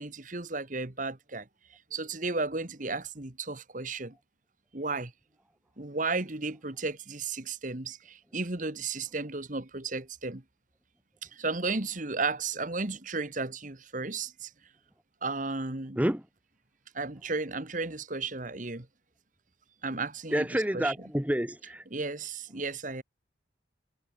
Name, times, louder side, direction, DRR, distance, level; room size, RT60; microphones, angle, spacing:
voice 1, 0.0-1.4 1.9-4.1 4.7-5.1 5.8-10.4 11.3-14.5 15.2-16.0 16.9-18.9 19.8-20.9 21.9-23.0, right 3 dB, 40° right, 1.7 m, -34 dB
voice 2, 20.3-21.8, equal, 10° right, 1.0 m, -28 dB
head